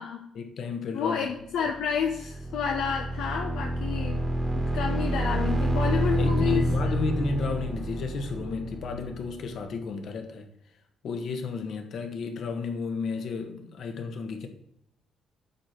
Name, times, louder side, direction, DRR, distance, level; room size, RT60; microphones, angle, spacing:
voice 1, 0.3-1.3 6.1-10.5 11.0-14.5, left 4 dB, 65° left, 1.6 m, -32 dB
voice 2, 0.9-4.2 4.7-7.0, left 7 dB, 85° left, 0.9 m, -30 dB
sound 1, 1.8-9.5, right 1 dB, 20° right, 1.3 m, -28 dB
8.7 x 6.5 x 4.5 m
cardioid pair, 90°, 0 cm